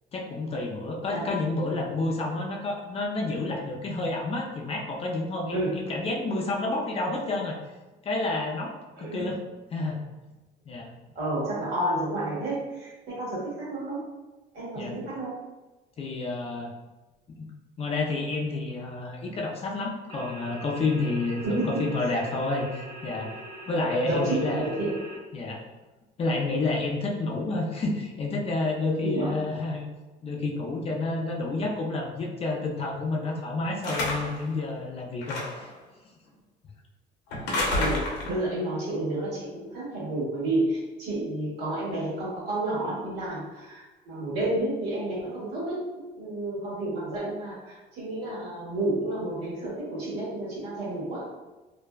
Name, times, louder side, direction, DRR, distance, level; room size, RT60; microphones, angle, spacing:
voice 1, 0.1-7.6 8.0-9.4 9.7-10.0 10.7-10.9 14.8-15.0 16.0-16.7 17.3-17.5 17.8-23.3 23.7-24.7 25.3-25.6 26.2-29.9 30.2-35.7, left 2 dB, 35° left, 0 dB, 0.4 m, -29 dB
voice 2, 9.0-9.3 11.1-14.0 14.5-15.3 21.4-21.9 24.0-25.1 29.0-29.3 37.7-51.3, right 1 dB, 85° right, -7 dB, 1.3 m, -30 dB
sound 1, 20.1-25.2, right 1 dB, 40° right, 0.9 m, -43 dB
sound 2, 33.8-34.5 35.2-35.7 37.3-38.4, left 2 dB, 85° left, 0.5 m, -29 dB
2.6 x 2.1 x 2.3 m, 1.2 s
cardioid pair, 110°, 17 cm